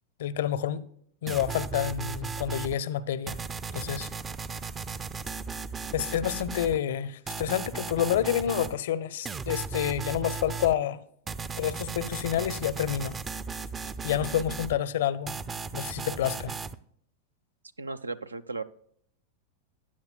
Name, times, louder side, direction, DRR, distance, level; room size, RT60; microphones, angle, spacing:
voice 1, 0.2-0.8 1.2-3.4 3.7-4.1 5.9-11.0 11.6-13.2 14.0-15.3 15.7-16.5, left 10 dB, 55° left, 0.6 m, -28 dB
sound 1, 1.3-2.7 3.3-6.8 7.3-8.8 9.3-10.7 11.3-14.8 15.3-16.8, right 5 dB, 20° right, 0.4 m, -36 dB
voice 2, 17.8-18.6, right 3 dB, 80° right, 0.5 m, -35 dB
15.0 x 9.9 x 2.2 m
figure-of-eight pair, 90°, 0 cm